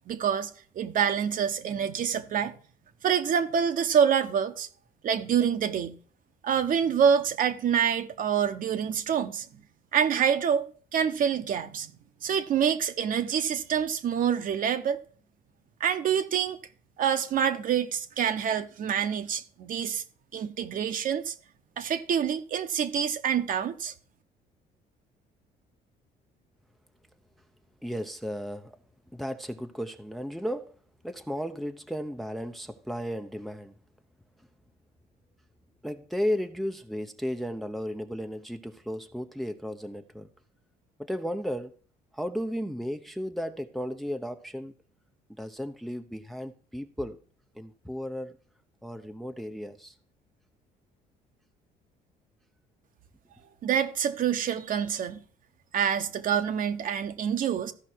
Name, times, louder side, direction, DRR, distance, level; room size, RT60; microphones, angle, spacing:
voice 1, 0.1-0.5 0.7-2.5 3.0-4.7 5.0-6.0 6.4-9.5 9.9-10.7 10.9-11.9 12.2-15.0 15.8-16.6 17.0-20.0 20.3-21.3 21.8-23.9 53.6-55.2 55.7-57.7, right 8 dB, 55° right, 1.1 m, -26 dB
voice 2, 27.8-28.8 29.1-30.8 31.0-33.7 35.8-40.3 41.0-41.7 42.1-44.7 45.3-47.2 47.5-48.4 48.8-49.9, equal, ahead, 0.8 m, -34 dB
14.5 x 5.3 x 4.5 m
cardioid pair, 110°, 17 cm